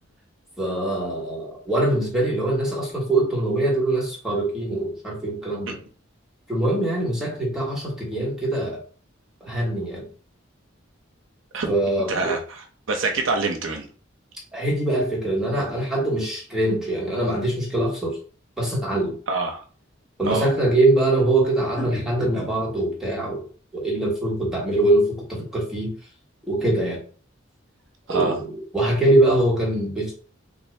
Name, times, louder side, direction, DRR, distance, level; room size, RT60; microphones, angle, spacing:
voice 1, 0.6-5.8 6.5-8.8 9.4-10.1 11.7-12.3 14.5-18.2 18.6-19.1 20.2-23.4 23.7-25.9 26.5-27.0 28.1-30.1, right 1 dB, 5° right, -5 dB, 1.4 m, -23 dB
voice 2, 12.1-13.8 19.3-19.6 20.2-20.5 28.1-28.3, right 3 dB, 70° right, 3 dB, 0.7 m, -25 dB
3.6 x 2.6 x 3.2 m, 0.41 s
head